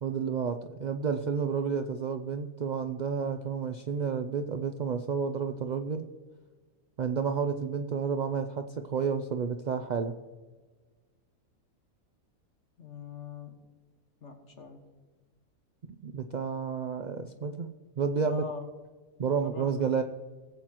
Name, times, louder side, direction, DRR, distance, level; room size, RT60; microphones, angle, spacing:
voice 1, 0.0-6.1 7.0-10.1 16.0-17.7 18.0-18.4 19.2-20.0, right 6 dB, 90° right, 7 dB, 0.4 m, -30 dB
voice 2, 12.8-13.5 14.2-14.8 18.2-18.7 19.4-20.0, left 6 dB, 55° left, 4 dB, 1.7 m, -42 dB
19.0 x 8.2 x 3.0 m, 1.3 s
omnidirectional pair, 1.5 m